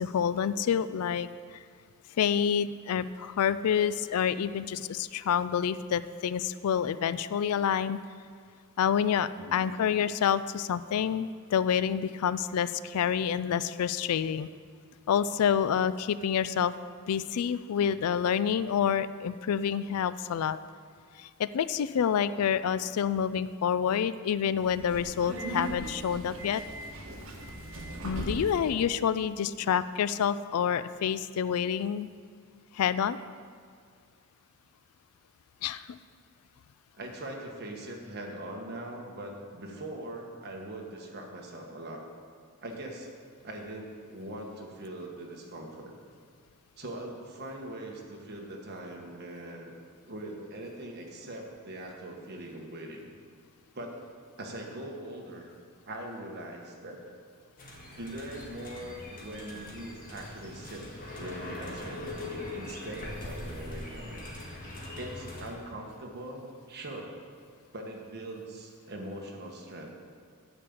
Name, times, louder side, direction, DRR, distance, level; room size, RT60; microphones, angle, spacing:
voice 1, 0.0-1.6 2.2-8.0 8.8-14.5 15.1-16.7 17.0-20.6 21.2-26.6 28.0-32.1 32.7-33.2 35.6-36.0, left 8 dB, 85° left, 15 dB, 0.4 m, -28 dB
Subway metro underground, 24.5-28.8, right 1 dB, 65° right, 1.5 m, -39 dB
voice 2, 37.0-42.1 42.6-43.1 43.4-45.9 46.8-49.7 50.1-53.1 53.7-54.0 54.4-55.5 55.9-57.0 57.9-60.8 61.2-67.1 67.7-69.9, right 1 dB, 50° right, 1 dB, 1.4 m, -41 dB
sound 1, 57.6-65.5, left 1 dB, 40° left, 1.6 m, -41 dB
9.7 x 5.2 x 7.1 m, 2.1 s
head